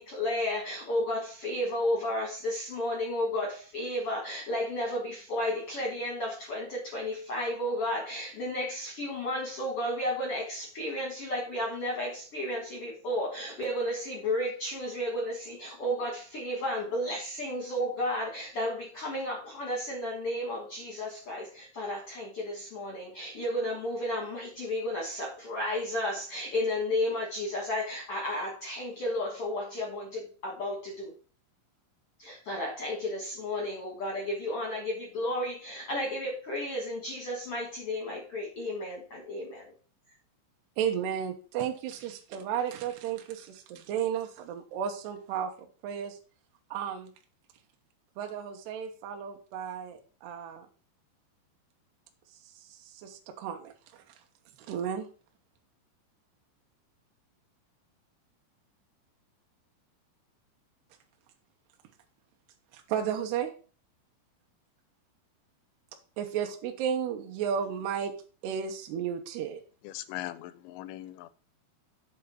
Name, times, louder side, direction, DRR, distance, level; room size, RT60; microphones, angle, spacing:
voice 1, 0.0-31.1 32.2-39.7, left 1 dB, 70° left, 1.3 m, -33 dB
voice 2, 40.8-45.5 45.8-46.2 46.7-47.1 48.2-50.7 52.7-53.7 54.7-55.1 62.9-63.5 66.2-68.1 68.4-69.6, right 8 dB, 75° right, 2.7 m, -33 dB
voice 3, 69.8-71.3, left 14 dB, 90° left, 3.0 m, -40 dB
7.9 x 3.6 x 6.6 m
omnidirectional pair, 5.3 m